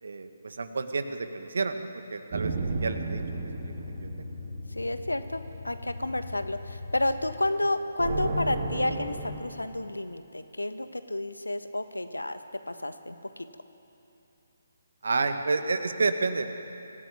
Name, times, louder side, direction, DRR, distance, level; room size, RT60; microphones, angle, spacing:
voice 1, 0.0-2.5 2.8-3.2 3.6-4.3 15.0-16.5, right 4 dB, 60° right, 8 dB, 1.7 m, -30 dB
sound 1, 2.3-5.0 8.0-9.4, right 3 dB, 40° right, 3.3 m, -33 dB
sound 2, 2.4-7.9, left 3 dB, 65° left, 1.4 m, -41 dB
voice 2, 4.7-12.4 12.7-13.5, left 1 dB, 80° left, 9 dB, 1.5 m, -31 dB
25.0 x 17.0 x 9.6 m, 2.9 s
figure-of-eight pair, 140°, 0 cm